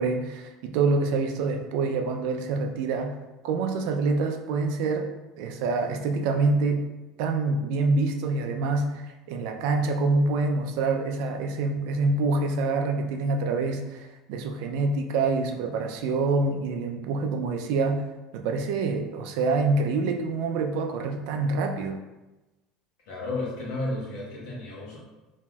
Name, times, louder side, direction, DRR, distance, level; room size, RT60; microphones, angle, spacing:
voice 1, 0.0-3.1 3.4-5.1 5.4-6.9 7.2-18.0 18.3-22.0, right 3 dB, 70° right, 5 dB, 0.3 m, -26 dB
voice 2, 23.1-25.0, left 2 dB, 80° left, -4 dB, 0.9 m, -32 dB
3.0 x 2.6 x 2.3 m, 1.1 s
cardioid pair, 140°, 0 cm